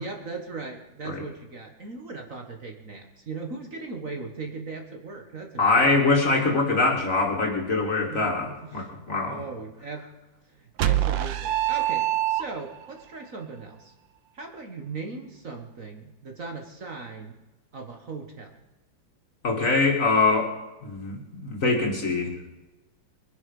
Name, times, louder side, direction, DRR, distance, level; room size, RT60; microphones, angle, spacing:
voice 1, 0.0-6.0 6.2-6.6 8.1-10.0 10.5-13.9 14.3-17.4 17.7-18.5, right 4 dB, 45° right, 3 dB, 1.7 m, -38 dB
voice 2, 5.6-9.4 19.4-20.5 20.8-22.3, left 3 dB, 40° left, 2 dB, 2.5 m, -23 dB
sound 1, 10.8-12.9, right 13 dB, 75° right, 1.6 m, -24 dB
23.0 x 10.0 x 5.4 m, 1.1 s
omnidirectional pair, 2.2 m